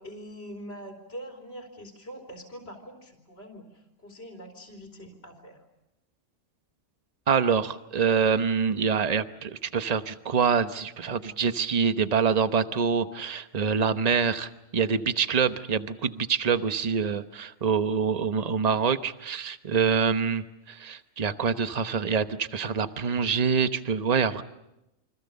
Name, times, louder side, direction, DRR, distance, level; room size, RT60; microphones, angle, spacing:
voice 1, 0.0-5.6, equal, 45° left, 2 dB, 3.7 m, -43 dB
voice 2, 7.3-24.4, right 6 dB, 30° right, 11 dB, 1.0 m, -25 dB
28.5 x 25.0 x 7.0 m, 0.88 s
omnidirectional pair, 1.5 m